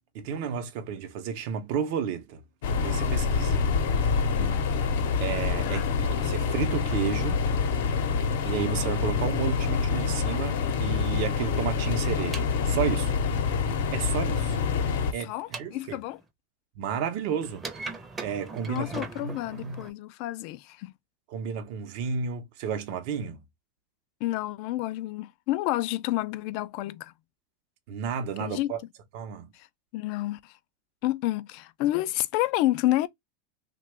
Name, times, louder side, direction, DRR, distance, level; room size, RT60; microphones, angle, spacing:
voice 1, 0.1-2.4 2.7-3.6 5.2-7.4 8.4-13.1 13.9-14.6 15.1-16.0 16.8-17.9 18.2-19.8 21.3-23.4 27.9-28.8 29.1-29.5, right 7 dB, 60° right, 0.7 m, -32 dB
sound 1, 2.6-15.1, left 5 dB, 80° left, 0.7 m, -26 dB
voice 2, 4.3-4.7 5.6-5.9 15.2-16.2 18.7-20.9 24.2-27.1 28.4-28.7 29.5-29.7 29.9-30.5 31.0-33.1, left 16 dB, 55° left, 0.3 m, -29 dB
sound 2, 12.2-16.2 17.4-19.9, right 3 dB, 20° right, 0.6 m, -41 dB
2.9 x 2.2 x 3.2 m
supercardioid pair, 135°, 0 cm